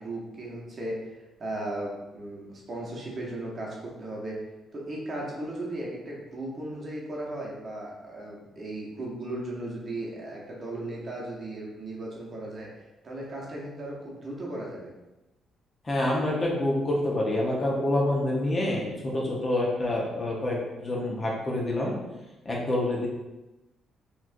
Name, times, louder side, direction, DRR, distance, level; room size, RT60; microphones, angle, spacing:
voice 1, 0.0-4.4 4.7-14.9, right 1 dB, 45° right, -3 dB, 0.9 m, -36 dB
voice 2, 15.8-21.9 22.4-23.1, left 1 dB, 30° left, -3 dB, 0.9 m, -27 dB
4.2 x 2.5 x 2.6 m, 1.1 s
cardioid pair, 90°, 0 cm